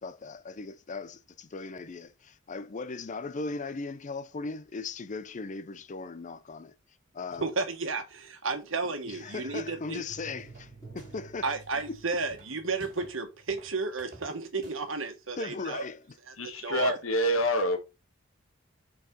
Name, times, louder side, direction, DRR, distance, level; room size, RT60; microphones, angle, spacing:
voice 1, 0.0-6.7 7.1-7.5 9.0-11.5 11.9-12.0 15.4-16.1, left 3 dB, 40° left, 0.5 m, -38 dB
voice 2, 7.4-8.0 8.4-10.0 11.4-15.8 16.3-16.4 16.6-17.0, right 4 dB, 70° right, 1.6 m, -32 dB
sound 1, 9.1-13.6 13.8-13.9, right 3 dB, 20° left, 2.5 m, -51 dB
sound 2, 10.4-11.3 11.6-13.2 13.5-14.9, right 2 dB, 45° right, 2.7 m, -52 dB
voice 3, 16.4-17.8, equal, 85° left, 1.6 m, -26 dB
5.2 x 4.7 x 5.4 m
head